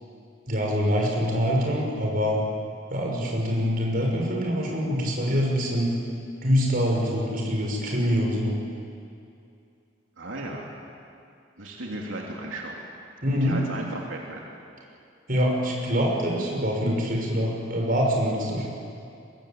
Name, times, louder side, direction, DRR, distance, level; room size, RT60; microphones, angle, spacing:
voice 1, 0.5-2.4 2.9-5.9 6.4-8.5 13.2-13.6 15.3-18.7, equal, 45° right, -1 dB, 6.0 m, -25 dB
voice 2, 10.2-10.7 11.6-12.9 13.4-14.5, right 1 dB, 90° right, -2 dB, 3.1 m, -35 dB
23.0 x 22.0 x 8.9 m, 2.5 s
head